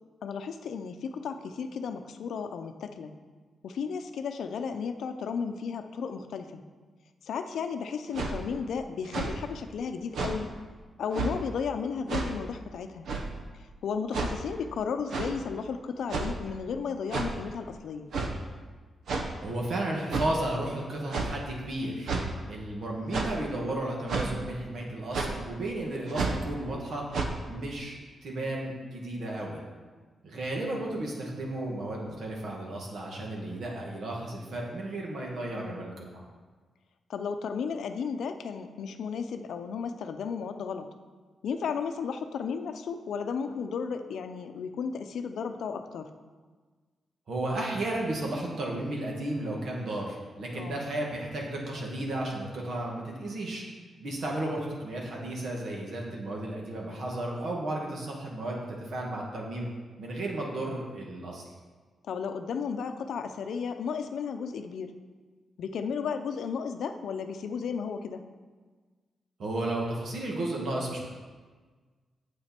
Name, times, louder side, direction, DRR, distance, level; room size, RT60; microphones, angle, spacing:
voice 1, 0.2-3.1 3.6-6.6 7.2-10.5 11.0-13.1 13.8-18.1 35.5-35.9 37.1-40.9 41.4-46.1 50.5-50.8 62.1-64.9 65.6-68.2, left 6 dB, 80° left, 7 dB, 0.6 m, -34 dB
sound 1, 8.1-8.3 9.0-9.3 10.1-10.4 11.1-11.3 12.1-12.3 13.1-13.3 14.1-14.3 15.1-15.3 16.1-16.4 17.1-17.3 18.1-18.3 19.1-19.3 20.1-20.3 21.1-21.3 22.1-22.3 23.1-23.4 24.1-24.3 25.1-25.3 26.1-26.4 27.1-27.3, right 4 dB, 80° right, 1.0 m, -30 dB
voice 2, 19.4-22.1 22.5-27.0 27.5-28.0 28.2-29.6 30.2-36.2 47.3-53.6 54.0-58.6 58.9-59.7 60.0-61.4 69.4-71.1, right 1 dB, 60° right, -1 dB, 2.0 m, -33 dB
9.0 x 7.8 x 4.4 m, 1.4 s
wide cardioid pair, 145°, 0 cm